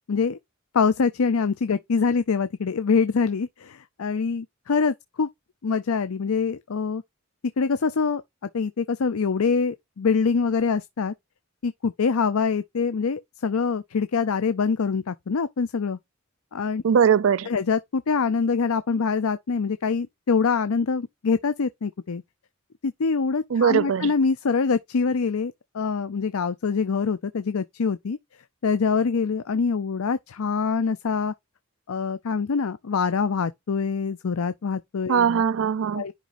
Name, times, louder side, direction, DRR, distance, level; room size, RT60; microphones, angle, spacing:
voice 1, 0.1-0.4 0.7-5.3 5.6-7.0 7.6-8.2 8.5-11.1 11.6-16.0 16.5-16.8 17.4-22.2 22.8-28.2 28.6-31.3 31.9-35.2 35.9-36.1, left 5 dB, 85° left, 0.5 m, -24 dB
voice 2, 16.8-17.5 23.5-24.1 35.1-36.0, right 7 dB, 65° right, 0.4 m, -20 dB
10.0 x 5.2 x 2.6 m
head